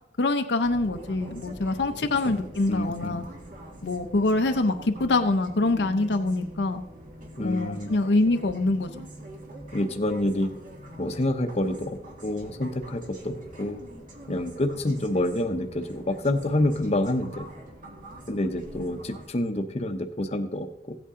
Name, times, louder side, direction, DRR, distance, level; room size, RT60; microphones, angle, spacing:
voice 1, 0.2-3.2 3.8-6.8 7.4-9.1, left 2 dB, 75° left, 7 dB, 0.7 m, -25 dB
sound 1, 0.6-19.3, right 1 dB, 50° right, 1.7 m, -44 dB
voice 2, 2.7-3.2 7.4-7.9 9.7-10.5 11.0-13.8 14.3-17.5 18.3-20.9, left 1 dB, 35° left, 5 dB, 0.8 m, -28 dB
15.5 x 8.4 x 3.7 m, 0.84 s
head